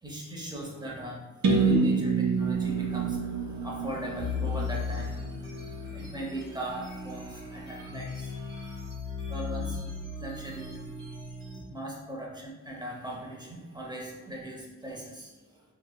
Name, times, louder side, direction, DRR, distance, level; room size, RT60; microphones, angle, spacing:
voice 1, 0.0-8.9 9.2-9.8 10.2-10.9 11.7-15.6, right 1 dB, 15° right, -3 dB, 0.7 m, -39 dB
sound 1, 1.4-5.3, right 4 dB, 60° right, 0.4 m, -27 dB
sound 2, 4.2-11.6, left 4 dB, 80° right, 0.9 m, -37 dB
3.0 x 2.0 x 2.2 m, 1.2 s
cardioid pair, 55°, 33 cm